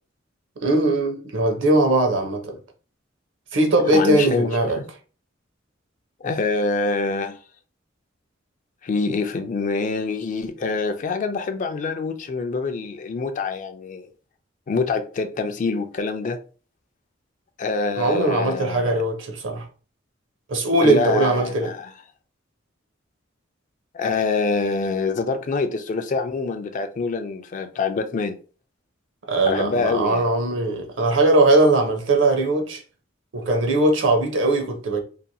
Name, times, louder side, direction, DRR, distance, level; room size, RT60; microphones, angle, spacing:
voice 1, 0.6-2.6 3.5-4.8 18.0-19.6 20.5-21.7 29.3-32.8 33.3-35.0, right 2 dB, 75° right, 0.6 m, -20 dB
voice 2, 3.9-4.5 4.8-4.9 6.2-7.4 8.8-14.1 14.7-16.4 17.6-19.0 20.8-21.9 23.9-28.4 29.5-30.2, left 4 dB, 40° left, 0.3 m, -25 dB
2.8 x 2.5 x 2.2 m
head